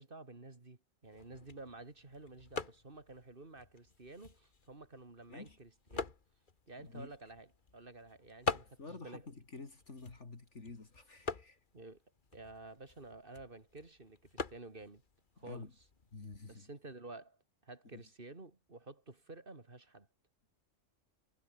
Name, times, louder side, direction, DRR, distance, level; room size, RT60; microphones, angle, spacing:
voice 1, 0.0-6.1 6.7-9.2 11.7-12.0 12.3-15.0 15.4-15.7 16.5-20.1, right 3 dB, 40° right, 2.8 m, -51 dB
sound 1, 1.0-16.6, left 4 dB, 40° left, 1.6 m, -46 dB
voice 2, 6.8-7.1 8.8-11.6 15.4-15.7 16.1-16.7 17.9-18.0, left 3 dB, 65° left, 3.0 m, -49 dB
omnidirectional pair, 1.4 m